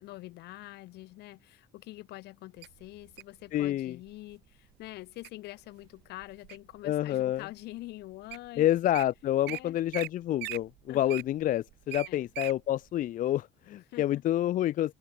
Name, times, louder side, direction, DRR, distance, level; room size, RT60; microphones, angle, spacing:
voice 1, 0.0-8.7 9.5-9.8 10.9-11.2 12.1-12.3 13.9-14.2, left 18 dB, 80° left, 1.4 m, -45 dB
Wild animals, 2.6-3.4 4.1-4.4 4.8-5.3 5.8-6.8 7.3-7.4 8.0-8.1 8.3-8.5 8.7-9.0 9.5-9.6 9.9-10.1 10.4-12.6 13.0-13.1, right 20 dB, 80° right, 0.4 m, -40 dB
voice 2, 3.5-4.0 6.8-7.4 8.6-14.9, left 13 dB, 50° left, 0.4 m, -28 dB
open air
cardioid pair, 110°, 17 cm